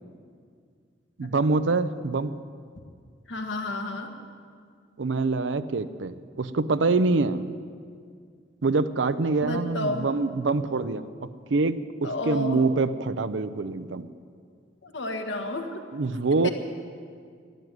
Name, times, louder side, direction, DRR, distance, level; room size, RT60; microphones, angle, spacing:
voice 1, 1.2-2.3 5.0-7.4 8.6-11.0 11.5-14.1 15.9-16.5, right 3 dB, 80° right, 12 dB, 0.6 m, -25 dB
voice 2, 3.3-4.1 9.4-10.1 12.0-12.7 14.8-15.8 16.3-16.5, left 2 dB, 80° left, 4 dB, 1.6 m, -31 dB
13.0 x 11.0 x 9.4 m, 2.1 s
head